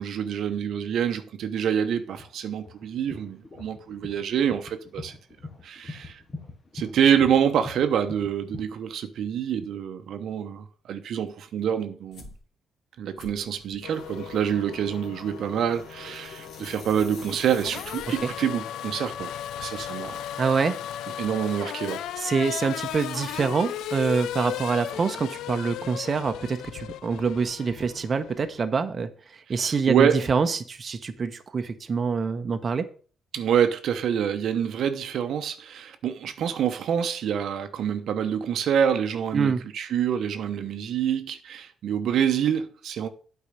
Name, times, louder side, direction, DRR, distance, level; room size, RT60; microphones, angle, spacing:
voice 1, 0.0-5.1 5.6-6.2 6.7-12.3 13.0-19.3 19.6-20.2 21.2-22.0 29.5-30.2 33.3-43.1, right 8 dB, 70° right, 0.9 m, -26 dB
sound 1, 2.1-8.6, left 3 dB, 30° left, 1.7 m, -42 dB
sound 2, 12.1-12.4 13.2-18.6, left 3 dB, 65° left, 2.3 m, -46 dB
Race car auto racing / Accelerating revving vroom, 13.8-28.6, left 11 dB, 85° left, 0.4 m, -36 dB
voice 2, 20.4-20.8 22.2-29.1 29.5-32.8 39.3-39.6, right 5 dB, 40° right, 0.9 m, -26 dB
8.4 x 4.6 x 6.8 m
cardioid pair, 90°, 0 cm